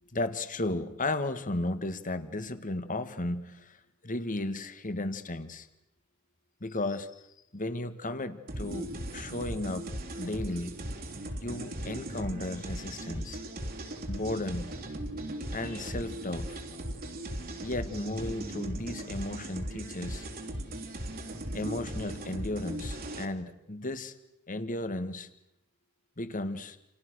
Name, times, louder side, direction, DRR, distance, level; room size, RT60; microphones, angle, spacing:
voice 1, 0.1-3.8 4.0-5.7 6.6-7.2 7.5-9.9 10.2-10.8 11.4-13.4 14.1-14.8 15.5-16.6 17.6-20.3 21.5-24.1 24.5-25.3 26.2-26.8, left 2 dB, 35° left, 11 dB, 2.0 m, -34 dB
sound 1, 8.5-23.3, right 1 dB, 45° right, 3.1 m, -38 dB
29.0 x 29.0 x 6.5 m, 0.83 s
head